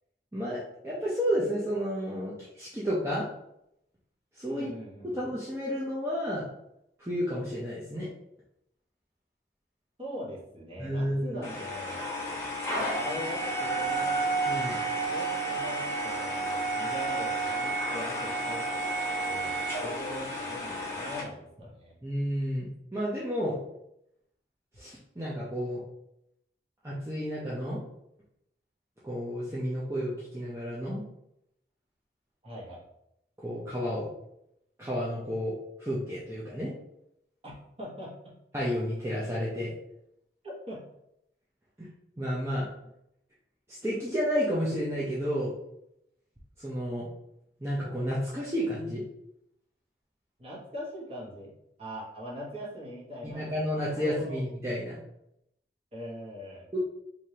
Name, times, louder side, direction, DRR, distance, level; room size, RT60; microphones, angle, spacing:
voice 1, 0.3-3.2 4.4-4.7 5.1-6.4 7.0-8.1 10.8-11.4 14.5-14.8 22.0-23.6 24.8-25.8 26.8-27.8 29.0-31.0 33.4-34.1 34.8-35.5 35.8-36.7 38.5-39.7 42.2-42.7 43.8-45.5 46.6-47.0 47.6-49.0 53.2-55.0 56.7-56.8, equal, 15° right, -8 dB, 0.6 m, -31 dB
voice 2, 4.5-5.2 10.0-12.1 13.0-14.2 15.1-18.6 19.3-19.5 19.8-21.9 32.4-32.8 37.4-37.5 37.8-38.3 40.4-40.8 50.4-51.5 51.8-53.6 53.9-54.4 55.9-56.7, equal, 35° right, -5 dB, 1.2 m, -41 dB
sound 1, 11.4-21.2, right 2 dB, 15° left, 1.2 m, -31 dB
4.8 x 2.8 x 2.8 m, 0.81 s
head